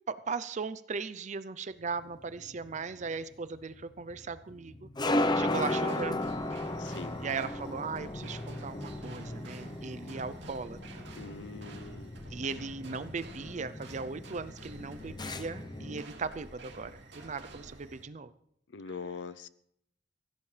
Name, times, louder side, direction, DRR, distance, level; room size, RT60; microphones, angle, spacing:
voice 1, 0.1-6.3 7.2-11.0 12.3-18.3, right 4 dB, 40° right, 14 dB, 0.5 m, -38 dB
sound 1, 2.0-16.0, left 1 dB, 25° left, 0.7 m, -36 dB
sound 2, 5.1-18.0, right 2 dB, 70° right, 2.8 m, -50 dB
voice 2, 6.8-7.2 11.2-12.2 18.7-19.5, left 5 dB, 85° left, 15 dB, 0.6 m, -43 dB
24.0 x 15.5 x 3.3 m, 0.73 s
head